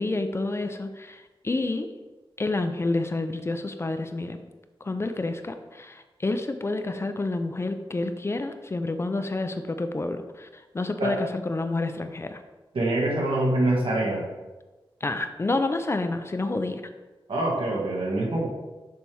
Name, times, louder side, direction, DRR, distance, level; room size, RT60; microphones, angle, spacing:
voice 1, 0.0-1.9 2.4-4.4 4.8-12.4 15.0-16.8, left 2 dB, 30° left, 8 dB, 0.5 m, -29 dB
voice 2, 12.7-14.2 17.3-18.5, right 1 dB, 75° right, -3 dB, 1.8 m, -25 dB
6.9 x 3.4 x 6.2 m, 1.2 s
wide cardioid pair, 135°, 9 cm